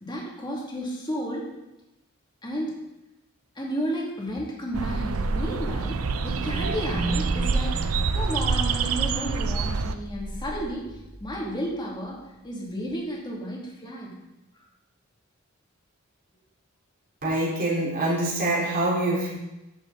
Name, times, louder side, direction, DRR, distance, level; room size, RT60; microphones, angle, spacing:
voice 1, 0.0-1.4 2.4-2.8 3.6-10.8 11.2-12.2 12.4-14.2, equal, 20° left, -4 dB, 2.6 m, -32 dB
sound 1, 4.7-9.9, right 4 dB, 80° right, 0.6 m, -26 dB
sound 2, 6.2-11.9 12.2-12.3, right 2 dB, 15° right, 1.1 m, -36 dB
voice 2, 17.2-19.3, right 1 dB, 45° right, -6 dB, 4.3 m, -25 dB
14.5 x 6.9 x 4.1 m, 0.97 s
head